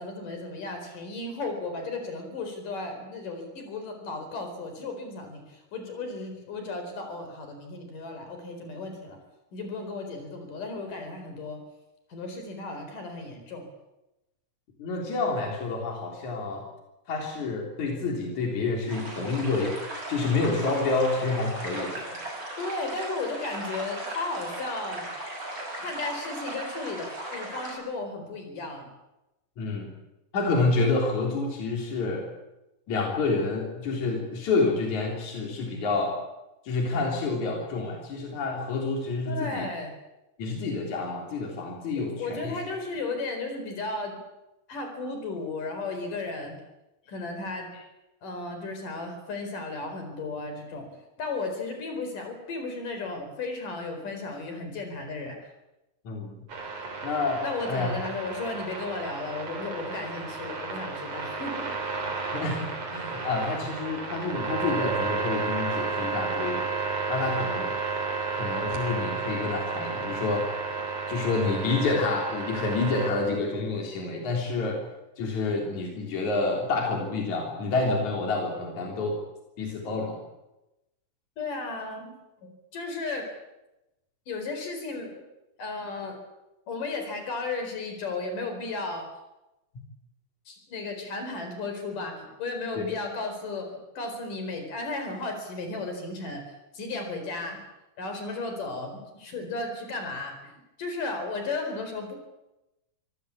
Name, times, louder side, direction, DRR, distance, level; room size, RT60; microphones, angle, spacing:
voice 1, 0.0-9.2 9.5-11.6 12.1-13.6 21.8-22.2 22.6-25.1 25.8-27.1 27.3-28.9 39.3-39.9 42.2-44.2 44.7-46.6 47.1-47.7 48.2-50.9 51.2-55.4 57.4-61.8 81.4-82.1 82.4-83.2 84.3-85.1 85.6-86.2 86.7-89.1 90.5-96.4 96.7-97.6 98.0-100.5 100.8-102.2, left 3 dB, 80° left, 5 dB, 6.0 m, -34 dB
voice 2, 14.8-16.6 17.1-19.8 20.1-22.0 29.6-29.9 30.3-32.3 32.9-36.1 36.7-39.7 40.4-42.6 56.0-56.4 57.0-57.9 62.3-66.6 67.1-67.7 68.3-70.5 71.1-74.8 75.2-79.2 79.6-80.2 92.8-92.9, left 3 dB, 65° left, 0 dB, 5.0 m, -28 dB
sound 1, 18.9-27.7, right 1 dB, 25° right, 7.3 m, -37 dB
sound 2, 56.5-73.1, right 4 dB, 55° right, 4.6 m, -32 dB
25.0 x 18.0 x 8.5 m, 0.96 s
omnidirectional pair, 3.7 m